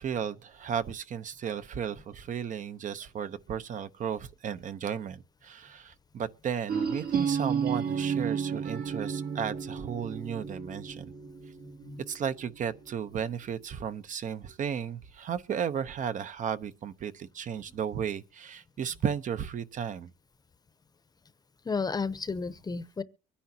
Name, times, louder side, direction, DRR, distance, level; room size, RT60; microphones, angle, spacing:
voice 1, 0.0-11.1 12.1-20.1, right 8 dB, 50° right, 0.9 m, -34 dB
sound 1, 6.7-12.5, right 7 dB, 75° right, 2.5 m, -32 dB
voice 2, 21.6-23.0, left 4 dB, 25° left, 0.8 m, -32 dB
24.0 x 10.0 x 2.8 m
cardioid pair, 110°, 17 cm